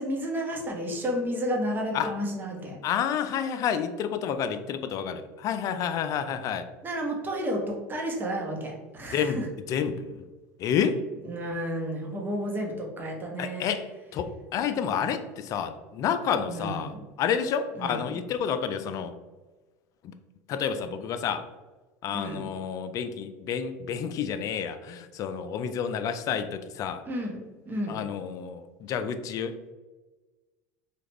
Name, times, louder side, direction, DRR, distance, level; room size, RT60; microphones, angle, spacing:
voice 1, 0.0-2.8 6.8-9.4 11.2-13.8 16.5-17.0 17.8-18.2 22.1-22.5 27.0-28.0, equal, 25° right, 0 dB, 0.9 m, -32 dB
voice 2, 2.8-6.7 9.1-9.4 9.7-10.2 10.6-11.1 13.4-19.1 20.0-20.1 20.5-21.4 22.0-27.0 27.9-29.7, left 7 dB, 50° left, 9 dB, 0.3 m, -30 dB
3.3 x 2.3 x 3.0 m, 1.2 s
hypercardioid pair, 90°, 8 cm